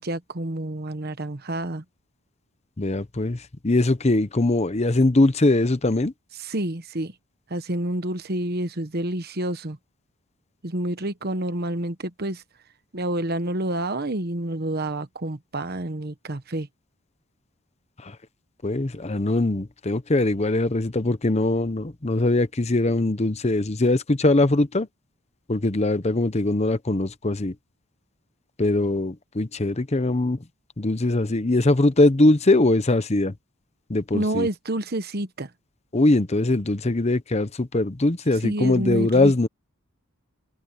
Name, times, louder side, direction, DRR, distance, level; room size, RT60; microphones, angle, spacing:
voice 1, 0.0-1.8 6.4-7.1 7.5-9.8 10.6-12.4 12.9-16.7 34.1-35.5 38.4-39.3, right 1 dB, 45° right, 1.2 m, -28 dB
voice 2, 2.8-6.1 18.0-18.2 18.6-24.9 25.5-27.5 28.6-30.4 30.8-33.3 33.9-34.5 35.9-39.5, left 2 dB, 30° left, 0.8 m, -21 dB
head